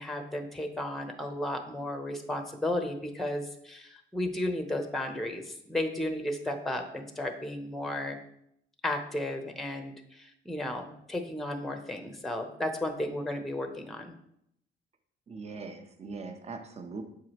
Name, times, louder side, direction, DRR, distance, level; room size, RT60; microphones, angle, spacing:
voice 1, 0.0-8.2 8.8-14.1, left 1 dB, ahead, 5 dB, 0.8 m, -34 dB
voice 2, 15.3-17.0, right 4 dB, 35° right, 6 dB, 0.8 m, -41 dB
7.1 x 4.7 x 3.0 m, 0.73 s
cardioid pair, 90°, 20 cm